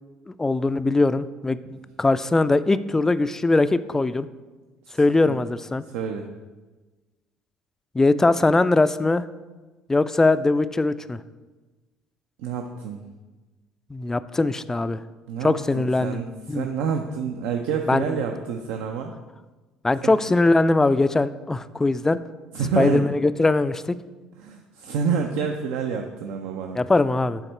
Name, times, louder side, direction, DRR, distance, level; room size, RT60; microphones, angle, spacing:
voice 1, 0.4-4.3 5.0-5.8 7.9-9.2 9.9-11.2 13.9-15.0 15.4-16.2 16.5-16.7 17.9-18.2 19.8-22.2 22.8-24.0 26.8-27.4, left 2 dB, 15° left, 14 dB, 0.3 m, -21 dB
voice 2, 4.9-5.4 5.9-6.3 12.4-13.0 15.3-19.1 20.0-20.2 22.5-23.1 24.4-26.8, right 6 dB, 65° right, 4 dB, 0.5 m, -28 dB
8.1 x 3.5 x 4.4 m, 1.2 s
hypercardioid pair, 55°, 3 cm